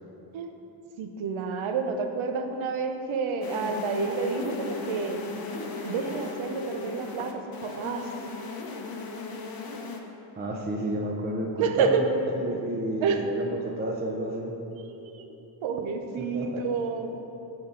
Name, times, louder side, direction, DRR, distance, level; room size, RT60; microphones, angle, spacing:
voice 1, 1.0-5.2 5.8-8.1 11.6-12.0 13.0-13.2 14.8-15.3 15.6-17.2, right 5 dB, 85° right, 6 dB, 0.6 m, -29 dB
sound 1, 3.4-10.0, left 3 dB, 50° left, 0.7 m, -36 dB
voice 2, 10.4-14.5 16.2-16.6, right 1 dB, 25° right, 0 dB, 0.4 m, -31 dB
6.1 x 5.5 x 3.8 m, 3.0 s
wide cardioid pair, 120°, 47 cm